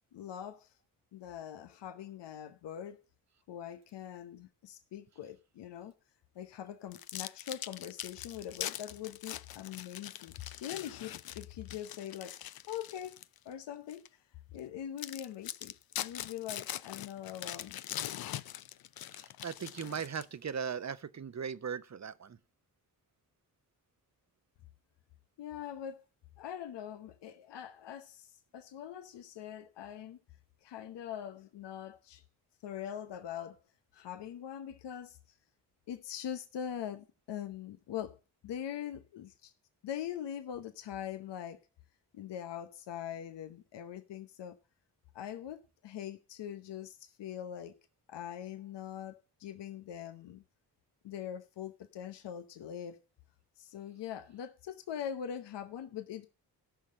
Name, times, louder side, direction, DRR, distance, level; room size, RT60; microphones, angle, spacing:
voice 1, 0.1-0.7 1.1-3.0 3.5-5.9 6.3-12.4 12.7-13.2 13.4-14.0 14.5-17.8 25.4-26.1 26.4-30.2 30.6-32.2 32.6-33.6 33.9-35.2 35.9-39.5 39.8-41.6 42.1-44.6 45.1-47.7 48.1-50.4 51.0-53.0 53.6-56.3, left 10 dB, 80° left, 1.0 m, -42 dB
sound 1, 6.9-13.4 13.9-14.1 14.6-14.7 15.0-20.5, left 12 dB, 60° left, 0.6 m, -42 dB
voice 2, 19.1-22.4, right 7 dB, 40° right, 0.9 m, -38 dB
14.0 x 5.7 x 6.4 m
supercardioid pair, 45°, 42 cm